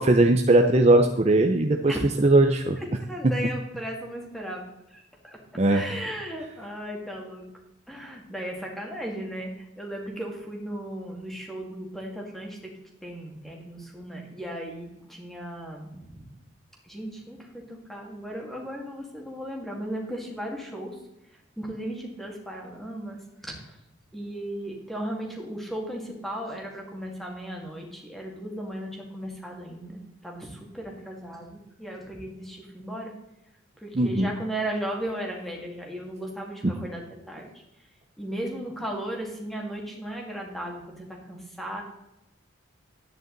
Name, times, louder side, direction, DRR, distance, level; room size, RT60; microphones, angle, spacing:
voice 1, 0.0-1.9 2.2-2.8 5.6-5.8 34.0-34.3 36.6-36.7, right 2 dB, 35° right, 4 dB, 0.6 m, -19 dB
voice 2, 2.8-4.6 4.9-5.4 5.7-7.5 7.9-9.5 9.8-12.6 13.0-16.3 16.8-21.0 21.6-23.8 24.1-33.1 33.8-37.5 38.2-41.8, right 1 dB, ahead, 0 dB, 2.1 m, -36 dB
11.5 x 9.4 x 3.9 m, 0.91 s
head